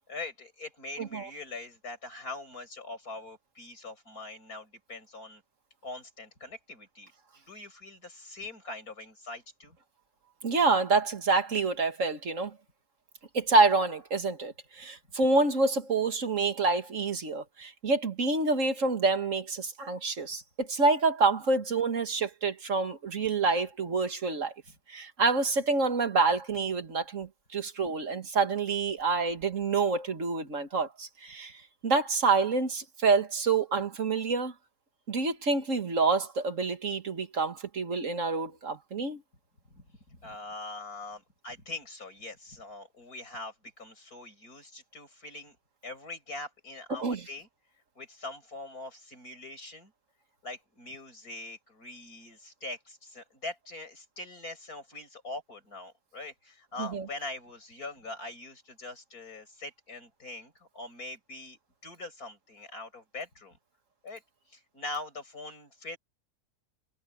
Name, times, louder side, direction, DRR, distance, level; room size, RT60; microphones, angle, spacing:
voice 1, 0.1-5.4 5.8-7.1 7.4-9.8 39.7-45.6 45.8-47.5 48.0-49.9 50.4-63.6 64.0-64.2 64.5-66.0, left 2 dB, 75° left, 7.5 m, -42 dB
voice 2, 10.4-12.5 13.3-24.5 24.9-31.5 31.8-34.5 35.1-39.2 46.9-47.2 56.8-57.1, right 3 dB, 55° right, 2.3 m, -27 dB
omnidirectional pair, 1.6 m